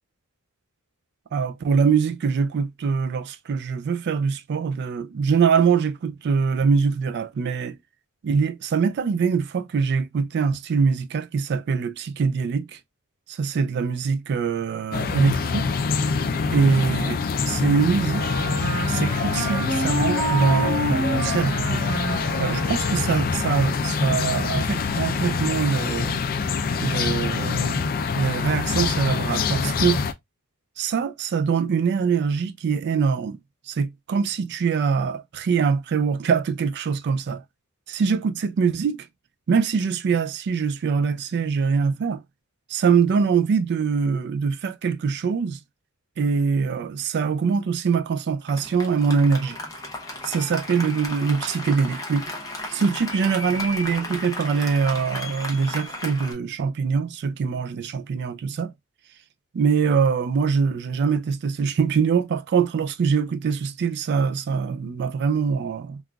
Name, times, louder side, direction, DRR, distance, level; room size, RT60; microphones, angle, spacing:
voice 1, 1.3-7.8 8.2-12.8 13.3-15.7 16.5-18.2 18.9-21.8 22.4-26.2 26.8-27.9 28.1-30.0 30.8-33.4 33.7-37.4 37.9-39.1 39.5-42.2 42.7-45.6 46.2-49.6 50.2-52.2 52.7-58.7 59.5-66.0, right 5 dB, 50° right, 0.3 m, -23 dB
sound 1, 14.9-30.1, left 5 dB, 40° left, 0.4 m, -25 dB
Wind instrument woodwind instrument, 18.1-23.4, right 1 dB, 85° right, 0.9 m, -28 dB
Applause, 48.5-56.3, left 1 dB, 15° left, 0.8 m, -34 dB
3.7 x 2.4 x 2.2 m
head